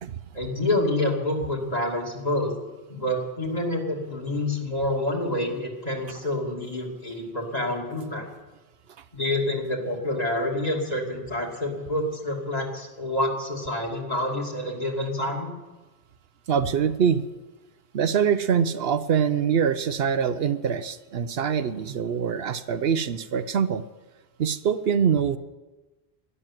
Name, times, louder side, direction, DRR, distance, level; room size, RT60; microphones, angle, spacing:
voice 1, 0.3-2.5 2.9-8.3 9.1-15.5, left 1 dB, 40° left, -1 dB, 2.8 m, -27 dB
voice 2, 16.5-17.2 17.9-23.8 24.4-25.4, right 7 dB, 70° right, 12 dB, 0.9 m, -24 dB
12.5 x 11.0 x 9.2 m, 1.1 s
omnidirectional pair, 1.1 m